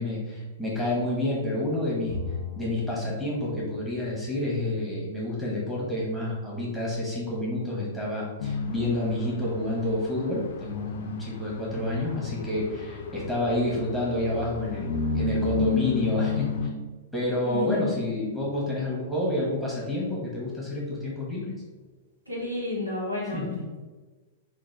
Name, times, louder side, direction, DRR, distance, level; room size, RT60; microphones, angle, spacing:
voice 1, 0.0-2.2 2.6-16.7 17.1-21.6 23.3-23.6, left 1 dB, ahead, -6 dB, 1.1 m, -29 dB
Bowed string instrument, 2.1-5.5, left 4 dB, 30° right, 1.5 m, -40 dB
sound 1, 8.4-16.7, left 5 dB, 55° left, 0.3 m, -32 dB
voice 2, 17.4-17.9 22.3-23.4, left 2 dB, 90° right, -5 dB, 1.0 m, -30 dB
3.7 x 2.2 x 3.2 m, 1.3 s
figure-of-eight pair, 100°, 0 cm